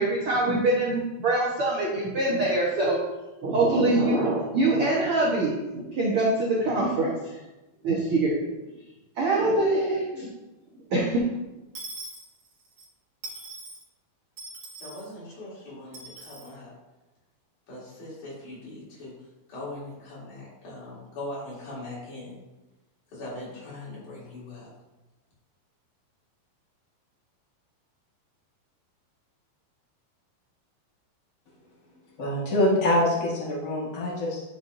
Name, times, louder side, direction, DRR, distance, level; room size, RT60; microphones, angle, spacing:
voice 1, 0.0-3.0 3.4-7.2 7.8-8.4 9.2-10.3 10.9-11.2, right 2 dB, 80° right, -4 dB, 1.2 m, -24 dB
Dishes pots and pans / Coin (dropping), 11.7-12.9 13.2-13.8 14.4-15.1 15.9-16.5, right 2 dB, 50° right, 2.0 m, -41 dB
voice 2, 14.8-16.7 17.7-19.2 19.5-22.3 23.1-24.7, left 2 dB, 55° left, -8 dB, 4.4 m, -40 dB
voice 3, 32.2-34.4, left 1 dB, 90° left, -5 dB, 0.7 m, -24 dB
10.0 x 6.9 x 2.6 m, 1.1 s
omnidirectional pair, 4.4 m